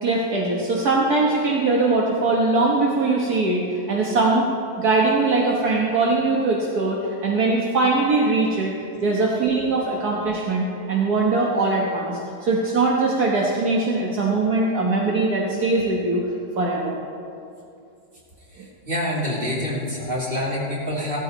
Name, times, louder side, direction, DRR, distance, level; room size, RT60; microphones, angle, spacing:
voice 1, 0.0-4.5 4.8-8.7 9.0-16.2 16.6-17.0, right 3 dB, 65° right, -2 dB, 1.8 m, -21 dB
voice 2, 18.5-21.2, left 1 dB, 30° right, -5 dB, 3.2 m, -27 dB
16.0 x 13.5 x 4.0 m, 2.6 s
omnidirectional pair, 1.8 m